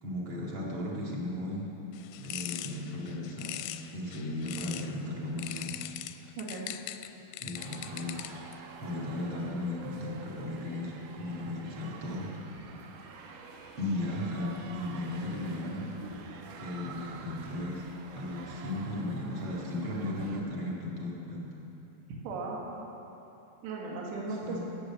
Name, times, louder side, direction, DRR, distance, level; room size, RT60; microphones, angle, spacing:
voice 1, 0.0-1.7 2.2-3.6 3.9-5.8 7.4-8.4 8.8-12.4 13.8-15.9 16.6-17.9 18.1-21.6 24.4-24.6, left 1 dB, 40° right, -4 dB, 2.1 m, -36 dB
sound 1, 1.9-5.0 5.4-8.5, left 14 dB, 80° left, 2.4 m, -41 dB
sound 2, 7.6-20.4, right 4 dB, 70° right, 2.2 m, -48 dB
voice 2, 22.1-22.8 23.6-24.6, right 3 dB, 85° right, -2 dB, 3.7 m, -37 dB
16.0 x 9.6 x 7.1 m, 3.0 s
omnidirectional pair, 4.8 m